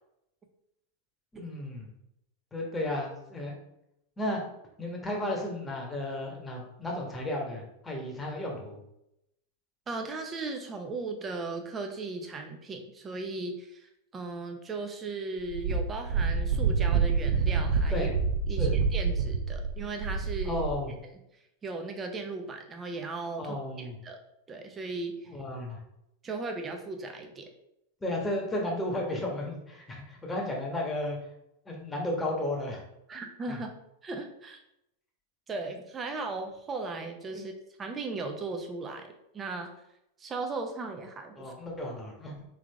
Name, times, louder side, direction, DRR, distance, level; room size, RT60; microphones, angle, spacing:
voice 1, 1.3-1.9 2.5-3.5 4.2-4.4 4.8-8.8 17.9-18.1 18.6-18.8 20.4-20.9 23.4-24.0 25.3-25.8 28.0-31.2 31.7-32.8 33.5-33.6 37.3-37.5 41.4-42.4, left 1 dB, 15° left, -1 dB, 1.3 m, -33 dB
voice 2, 9.9-18.1 18.5-20.6 21.6-24.2 24.5-25.3 26.2-27.5 33.1-33.7 34.0-34.6 35.5-37.5 37.8-39.7 40.2-41.5, right 3 dB, 25° right, 4 dB, 0.7 m, -37 dB
Wind, 15.5-20.8, right 5 dB, 65° right, 0.5 m, -27 dB
3.6 x 3.5 x 3.4 m, 0.83 s
figure-of-eight pair, 95°, 0 cm